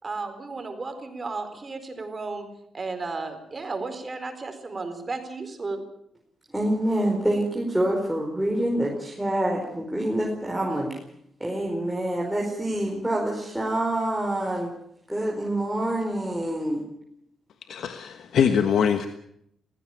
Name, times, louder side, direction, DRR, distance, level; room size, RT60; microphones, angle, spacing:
voice 1, 0.0-2.5 2.7-5.8, right 3 dB, 35° right, 7 dB, 4.5 m, -34 dB
voice 2, 6.5-10.9 11.4-14.7 15.1-16.8, right 1 dB, 5° right, -2 dB, 4.7 m, -26 dB
voice 3, 17.7-19.1, left 7 dB, 75° left, 8 dB, 1.3 m, -23 dB
21.0 x 16.0 x 9.1 m, 0.74 s
cardioid pair, 85°, 0 cm